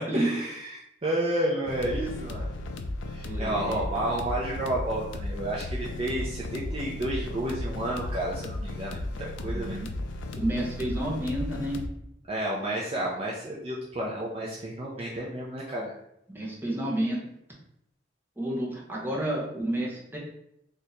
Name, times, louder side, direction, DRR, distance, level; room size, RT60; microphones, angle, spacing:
voice 1, 0.0-2.5 3.1-9.8 12.3-15.9, right 1 dB, 30° right, -4 dB, 0.5 m, -31 dB
sound 1, 1.7-11.9, left 1 dB, 80° left, 0.4 m, -35 dB
voice 2, 3.2-3.8 9.4-9.9 10.4-11.8 16.3-17.2 18.4-20.2, right 1 dB, 10° right, -5 dB, 0.9 m, -30 dB
2.8 x 2.6 x 4.1 m, 0.78 s
head